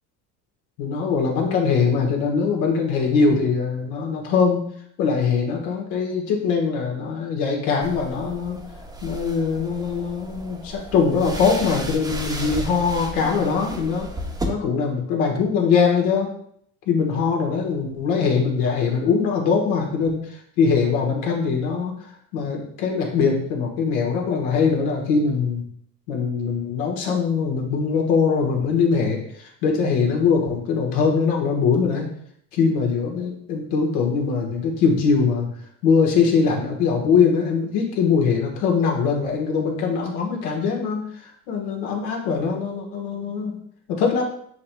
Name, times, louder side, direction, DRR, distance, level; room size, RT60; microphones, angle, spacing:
voice 1, 0.8-4.6 5.0-8.6 9.0-14.1 14.4-16.3 16.9-21.9 22.3-25.6 26.1-32.1 32.5-35.5 35.8-43.6 43.9-44.3, left 5 dB, 65° left, 0 dB, 1.4 m, -22 dB
sound 1, 7.8-14.4, right 1 dB, 5° right, 0.8 m, -34 dB
7.5 x 2.9 x 2.2 m, 0.67 s
hypercardioid pair, 75°, 50 cm